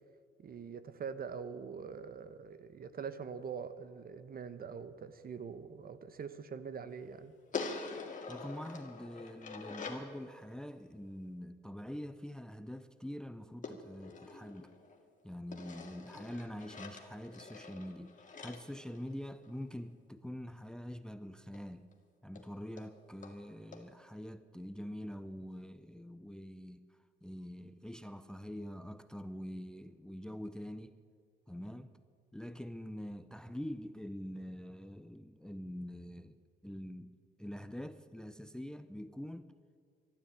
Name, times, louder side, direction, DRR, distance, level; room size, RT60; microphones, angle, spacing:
voice 1, 0.4-7.3, right 6 dB, 50° right, 1.0 m, -44 dB
sound 1, 7.5-10.1 13.6-15.0 15.5-19.6 21.5-21.6 21.9-22.0 22.4-22.5 22.8-22.9 23.2-23.4 23.7-23.8, left 4 dB, 40° left, 2.1 m, -45 dB
voice 2, 8.3-14.7 15.2-18.1 18.4-21.9 22.2-31.0 31.5-32.0 32.3-36.4 36.6-37.1 37.4-39.6, equal, 5° left, 0.6 m, -45 dB
12.0 x 12.0 x 9.1 m
cardioid pair, 90°, 20 cm